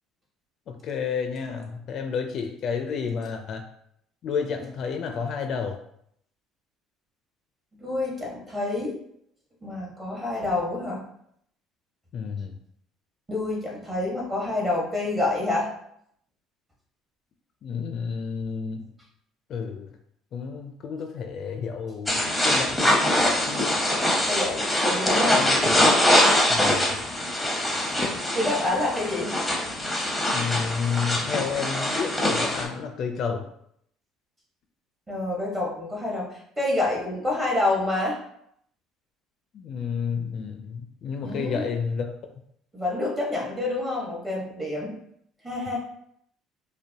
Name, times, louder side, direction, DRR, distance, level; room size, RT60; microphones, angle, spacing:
voice 1, 0.7-3.6 4.2-5.8 12.1-12.6 17.6-18.9 19.5-19.9 20.3-23.9 25.4-25.9 26.5-27.0 30.3-33.5 39.5-42.1, left 6 dB, 50° left, 5 dB, 0.4 m, -31 dB
voice 2, 7.8-8.9 9.6-11.0 13.3-15.7 24.3-25.5 28.3-29.3 35.1-38.2 41.2-41.7 42.7-44.9 45.4-45.8, left 2 dB, 20° right, -3 dB, 1.3 m, -27 dB
sound 1, 22.1-32.6, left 1 dB, ahead, 0.8 m, -23 dB
5.1 x 2.2 x 2.7 m, 0.70 s
cardioid pair, 130°, 0 cm